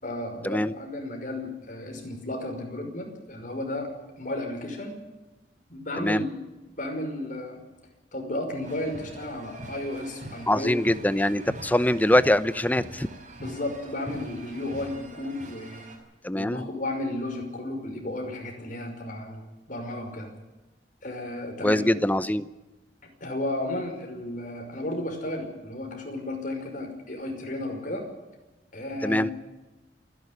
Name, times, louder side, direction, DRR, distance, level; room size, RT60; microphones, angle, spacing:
voice 1, 0.0-3.9 4.2-5.0 5.7-6.3 6.8-7.6 8.1-10.7 11.1-11.2 13.4-15.8 16.3-20.3 21.0-21.9 23.0-28.1 28.7-29.3, left 1 dB, 50° left, 4 dB, 5.6 m, -33 dB
sound 1, 8.6-16.0, right 1 dB, 45° right, 5.5 m, -43 dB
voice 2, 10.5-13.1 16.2-16.6 21.6-22.5 29.0-29.3, left 1 dB, 10° left, 14 dB, 0.7 m, -23 dB
28.0 x 11.0 x 9.6 m, 1.1 s
head